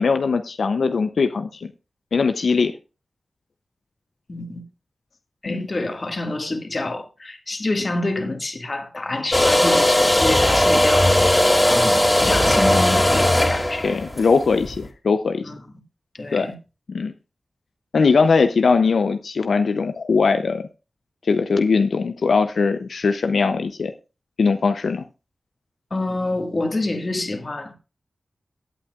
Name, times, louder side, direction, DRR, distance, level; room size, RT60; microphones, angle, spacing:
voice 1, 0.0-1.7 2.1-2.7 5.4-5.6 13.8-15.4 16.3-16.5 16.9-17.1 17.9-20.6 21.2-23.9 24.4-25.0, left 4 dB, 90° left, 0.5 m, -20 dB
voice 2, 4.3-4.6 5.4-14.0 15.4-15.6 16.1-16.5 25.9-27.8, left 2 dB, 45° left, 1.7 m, -27 dB
sound 1, 9.3-14.8, left 1 dB, 20° left, 2.5 m, -17 dB
16.5 x 8.6 x 2.4 m
wide cardioid pair, 90°, 0 cm